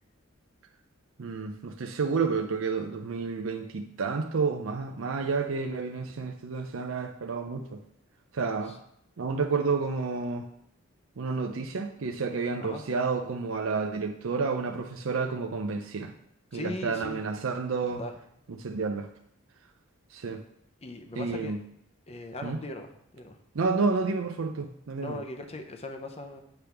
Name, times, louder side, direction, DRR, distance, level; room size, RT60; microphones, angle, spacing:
voice 1, 1.2-7.8 8.3-8.8 9.2-10.4 11.2-16.1 16.5-18.0 18.6-19.1 20.1-20.4 21.2-21.6 22.4-22.6 23.5-25.2, right 4 dB, 75° right, 4 dB, 0.5 m, -30 dB
voice 2, 16.5-17.2 18.0-18.1 20.8-21.5 22.1-23.4 25.0-26.4, left 2 dB, 30° left, 5 dB, 0.7 m, -39 dB
8.0 x 3.5 x 5.7 m, 0.72 s
head